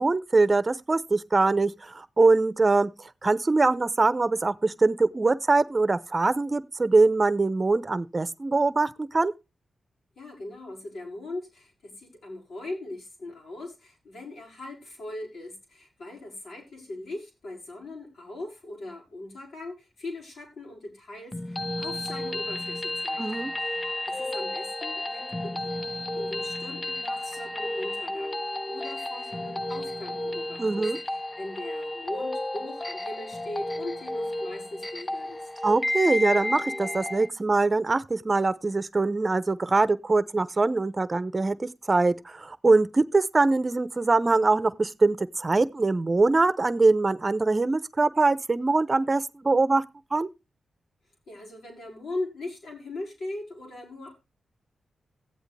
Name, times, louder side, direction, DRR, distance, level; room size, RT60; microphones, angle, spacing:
voice 1, 0.0-2.9 3.2-9.3 23.2-23.5 30.6-31.0 35.6-49.8 50.1-50.3, right 3 dB, 35° right, 0.9 m, -23 dB
voice 2, 10.2-23.2 23.6-28.4 28.7-35.5 51.3-54.1, left 2 dB, 80° left, 5.8 m, -40 dB
sound 1, 21.3-37.3, left 1 dB, 25° left, 0.7 m, -32 dB
15.0 x 8.1 x 3.4 m
cardioid pair, 45°, 0 cm